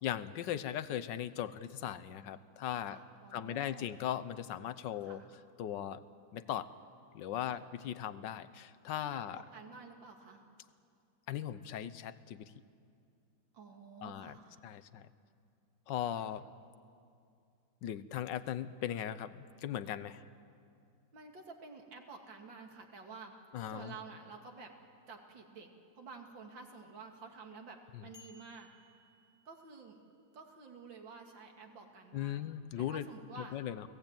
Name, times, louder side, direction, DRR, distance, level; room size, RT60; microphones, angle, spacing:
voice 1, 0.0-3.0 3.3-5.2 5.6-6.0 6.3-6.7 7.1-9.4 11.3-12.4 14.0-14.3 14.6-15.1 15.9-16.5 17.8-19.3 19.6-20.2 23.5-23.9 32.1-33.1 33.5-33.8, left 11 dB, 75° left, 14 dB, 1.5 m, -38 dB
voice 2, 2.8-3.9 5.0-5.3 7.4-7.6 9.1-10.4 13.5-14.6 21.1-23.3 23.7-24.7 25.1-28.7 29.4-30.0 30.3-32.5 32.8-33.6, right 4 dB, 85° right, 3 dB, 3.0 m, -51 dB
sound 1, 28.1-30.0, left 1 dB, 10° right, 2.3 m, -61 dB
29.5 x 18.5 x 9.0 m, 2.5 s
omnidirectional pair, 2.0 m